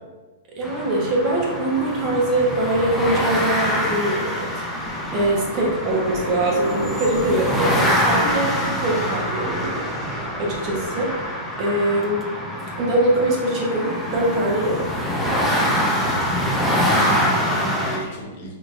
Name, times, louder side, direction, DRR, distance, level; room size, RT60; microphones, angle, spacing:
voice 1, 0.5-4.5 5.1-12.2 12.8-14.9 18.0-18.1, right 1 dB, 35° right, -2 dB, 0.9 m, -23 dB
sound 1, 0.6-18.0, equal, 5° left, 0.6 m, -25 dB
Fixed-wing aircraft airplane, 4.8-11.3, left 1 dB, 20° left, 1.2 m, -39 dB
voice 2, 8.8-9.2 17.0-18.5, right 1 dB, 55° left, -1 dB, 1.1 m, -33 dB
3.7 x 3.0 x 2.5 m, 1.2 s
hypercardioid pair, 125°, 0 cm